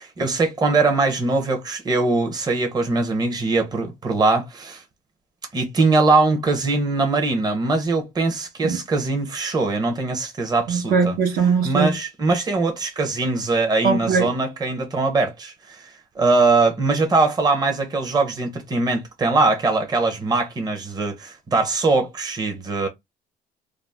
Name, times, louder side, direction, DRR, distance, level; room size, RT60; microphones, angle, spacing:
voice 1, 0.0-4.8 5.5-11.2 11.6-22.9, right 3 dB, 25° right, 0.7 m, -21 dB
voice 2, 10.7-11.9 13.8-14.3, right 5 dB, 60° right, 0.8 m, -20 dB
2.5 x 2.0 x 3.3 m
cardioid pair, 110°, 17 cm